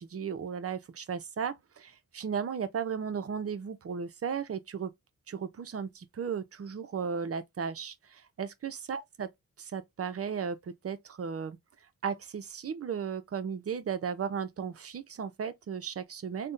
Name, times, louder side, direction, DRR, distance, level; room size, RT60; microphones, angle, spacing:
voice 1, 0.0-4.9 5.3-9.3 9.6-11.6 12.0-16.5, right 6 dB, 45° right, 0.6 m, -35 dB
3.4 x 2.2 x 2.5 m
cardioid pair, 80°, 33 cm